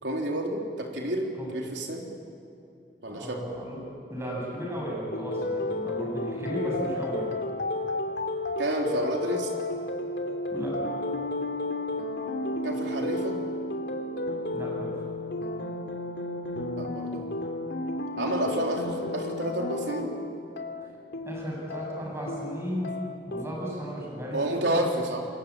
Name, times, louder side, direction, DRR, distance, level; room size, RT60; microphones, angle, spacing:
voice 1, 0.0-2.1 3.0-3.4 8.6-9.5 12.6-13.4 16.8-17.2 18.2-20.1 24.3-25.2, right 1 dB, 90° right, 1 dB, 3.8 m, -30 dB
voice 2, 3.1-3.8 4.1-7.3 10.5-10.9 14.5-15.0 21.2-23.0 23.2-24.4 24.7-24.8, equal, 15° right, -2 dB, 7.8 m, -34 dB
sound 1, 5.1-23.4, left 2 dB, 80° left, 2.8 m, -32 dB
28.0 x 21.5 x 8.7 m, 2.9 s
head